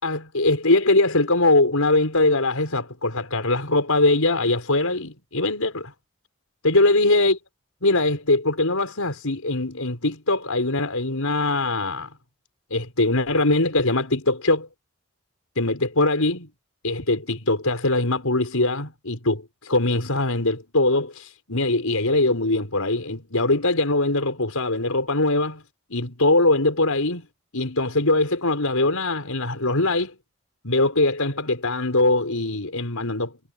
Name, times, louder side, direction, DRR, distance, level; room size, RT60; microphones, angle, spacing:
voice 1, 0.0-5.9 6.6-7.4 7.8-12.1 12.7-14.7 15.6-16.5 16.8-25.6 25.9-27.3 27.5-30.2 30.6-33.3, left 2 dB, 85° left, 5.2 m, -22 dB
head